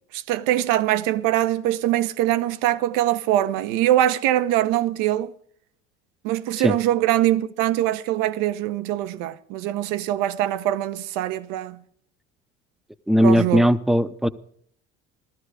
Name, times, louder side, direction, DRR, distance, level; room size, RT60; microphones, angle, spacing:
voice 1, 0.1-5.3 6.2-11.8 13.2-13.7, right 13 dB, 65° right, 0.9 m, -23 dB
voice 2, 13.1-14.3, equal, ahead, 0.8 m, -18 dB
17.0 x 13.0 x 4.9 m
hypercardioid pair, 70°, 35 cm